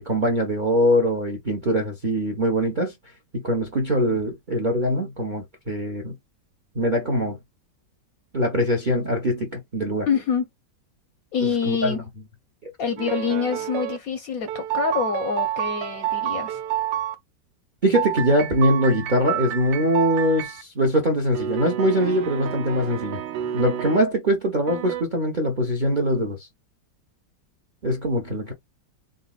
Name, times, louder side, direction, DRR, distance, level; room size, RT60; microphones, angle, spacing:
voice 1, 0.0-2.9 3.3-6.1 6.7-7.4 8.3-10.1 11.4-11.9 12.6-12.7 17.8-23.2 23.5-26.5 27.8-28.5, equal, 50° right, 0.6 m, -22 dB
voice 2, 10.1-10.5 11.3-12.0 12.8-16.6, left 6 dB, 70° left, 0.9 m, -26 dB
sound 1, 13.0-14.0 14.5-17.1 17.9-20.6 21.3-24.0 24.7-25.0, right 11 dB, 85° right, 1.3 m, -29 dB
4.0 x 3.6 x 2.3 m
omnidirectional pair, 2.0 m